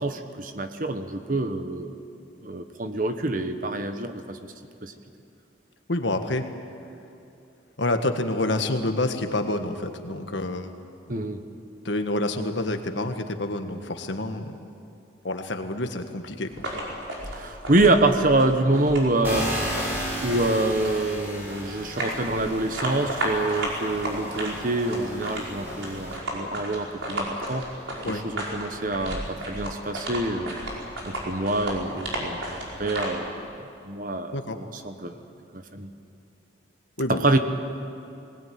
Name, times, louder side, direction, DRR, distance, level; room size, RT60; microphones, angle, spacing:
voice 1, 0.0-2.0 2.4-4.4 4.8-4.9 11.1-11.4 17.3-19.5 20.2-27.7 28.1-30.6 31.0-35.2 35.5-35.9 37.1-37.4, right 2 dB, 45° right, 7 dB, 1.3 m, -26 dB
voice 2, 5.9-6.5 7.8-10.7 11.8-14.6 15.2-16.5 28.0-28.2 34.3-34.6 37.0-37.2, left 2 dB, 70° left, 6 dB, 1.6 m, -28 dB
sound 1, 16.5-33.1, right 1 dB, 85° right, 5.4 m, -34 dB
sound 2, 19.2-26.2, equal, 10° right, 4.8 m, -34 dB
20.5 x 19.5 x 9.5 m, 2.7 s
head